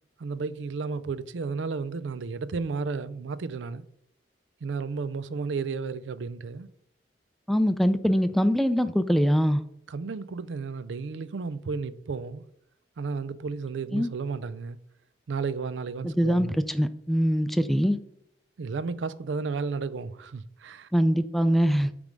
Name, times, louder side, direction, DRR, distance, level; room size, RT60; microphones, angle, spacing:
voice 1, 0.2-3.8 4.6-6.7 9.9-12.5 13.0-14.8 15.3-16.6 18.6-20.9, right 4 dB, 85° right, 0.4 m, -33 dB
voice 2, 7.5-9.6 13.9-14.1 16.0-18.0 20.9-21.9, equal, ahead, 0.4 m, -23 dB
8.2 x 3.5 x 5.2 m
head